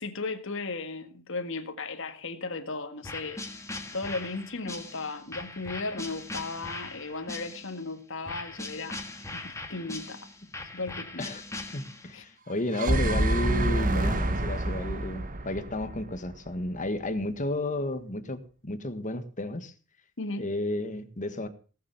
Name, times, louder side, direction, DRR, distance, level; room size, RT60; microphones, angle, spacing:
voice 1, 0.0-3.4 3.9-9.0 9.3-10.3 10.7-11.3 12.1-12.2 20.2-20.4, left 3 dB, 65° left, 1.8 m, -36 dB
sound 1, 3.0-7.8 8.3-12.2, left 2 dB, 15° left, 1.9 m, -40 dB
voice 2, 11.7-19.7 20.4-21.5, left 1 dB, 40° left, 1.6 m, -32 dB
sound 2, 12.5-16.7, right 1 dB, 40° right, 1.4 m, -27 dB
18.0 x 7.2 x 6.8 m
head